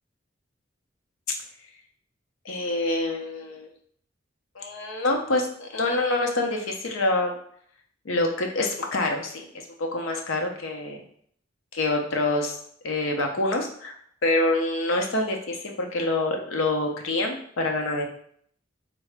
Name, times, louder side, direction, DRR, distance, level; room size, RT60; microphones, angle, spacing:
voice 1, 2.4-3.7 4.6-7.4 8.0-9.4 9.8-11.0 11.7-12.5 12.8-13.9 14.2-18.0, left 2 dB, 90° left, 2 dB, 0.6 m, -26 dB
3.6 x 2.0 x 3.3 m, 0.63 s
head